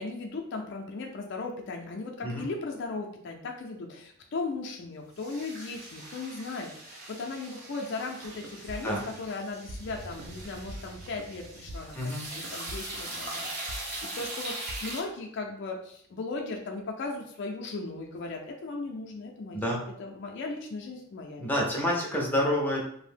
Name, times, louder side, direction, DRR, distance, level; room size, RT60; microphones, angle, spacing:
voice 1, 0.0-21.5, left 3 dB, 55° left, 1 dB, 0.4 m, -37 dB
sound 1, 5.2-15.0, right 1 dB, 45° right, 0.8 m, -41 dB
sound 2, 8.2-14.8, right 1 dB, 65° right, 0.3 m, -44 dB
voice 2, 11.9-12.3 19.5-19.8 21.4-22.9, equal, 10° left, -3 dB, 0.5 m, -28 dB
2.6 x 2.0 x 3.3 m, 0.67 s
head